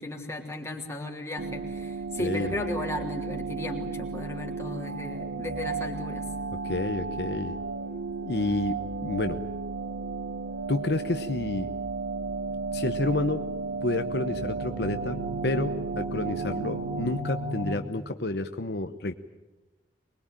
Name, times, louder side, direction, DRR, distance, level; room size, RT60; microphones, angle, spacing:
voice 1, 0.0-6.2, left 1 dB, 15° left, 0 dB, 3.2 m, -35 dB
sound 1, 1.4-17.2, right 4 dB, 75° right, 1.1 m, -34 dB
voice 2, 2.2-2.5 6.6-7.6 8.2-9.4 10.7-11.7 12.7-13.4 13.8-15.2 15.4-19.1, left 2 dB, 65° left, 7 dB, 1.0 m, -29 dB
sound 2, 12.1-17.7, right 1 dB, 35° right, 5.2 m, -38 dB
24.0 x 21.5 x 9.0 m, 1.1 s
head